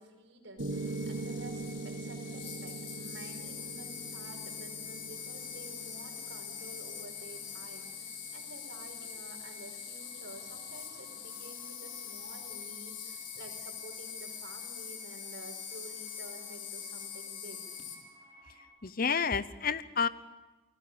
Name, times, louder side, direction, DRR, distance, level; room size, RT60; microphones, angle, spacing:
voice 1, 0.0-17.6, right 2 dB, 75° right, 2 dB, 5.4 m, -51 dB
Insect, 0.6-17.9, left 8 dB, 75° left, 4.0 m, -43 dB
Piano, 0.6-8.6, right 2 dB, 60° right, 1.7 m, -42 dB
sound 1, 0.7-18.7, right 1 dB, 15° right, 4.5 m, -56 dB
voice 2, 18.8-20.1, left 6 dB, 50° left, 15 dB, 0.9 m, -30 dB
29.5 x 19.5 x 7.0 m, 1.2 s
head